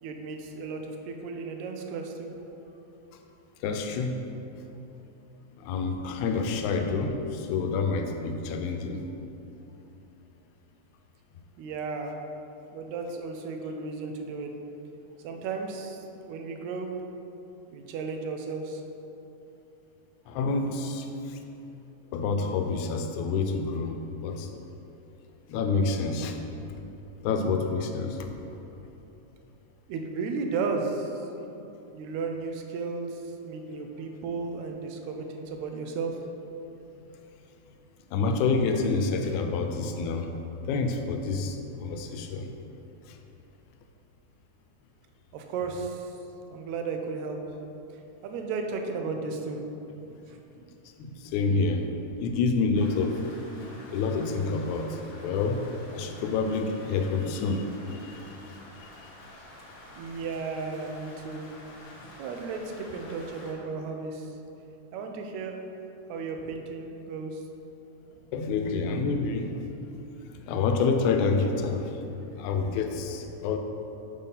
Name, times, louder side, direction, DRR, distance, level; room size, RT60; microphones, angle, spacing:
voice 1, 0.0-2.3 11.6-12.2 12.7-14.5 15.2-16.9 17.7-18.8 29.9-31.3 31.9-36.2 45.3-46.2 46.5-47.4 48.2-49.6 50.0-50.7 60.0-61.5 62.2-64.3 64.9-65.6 66.1-67.4, right 4 dB, 80° right, 3 dB, 1.8 m, -34 dB
voice 2, 3.6-4.2 5.6-9.0 20.3-21.4 22.1-24.5 25.5-26.4 27.2-28.3 38.1-40.3 40.7-42.5 43.1-43.2 51.0-51.9 52.2-53.2 53.9-55.6 55.9-58.2 58.5-58.6 68.3-69.8 70.5-72.0 72.4-73.6, left 4 dB, 85° left, 5 dB, 2.0 m, -28 dB
Rain, 52.7-63.5, left 1 dB, 65° left, 1.8 m, -49 dB
6.5 x 3.7 x 5.4 m, 2.9 s
omnidirectional pair, 3.4 m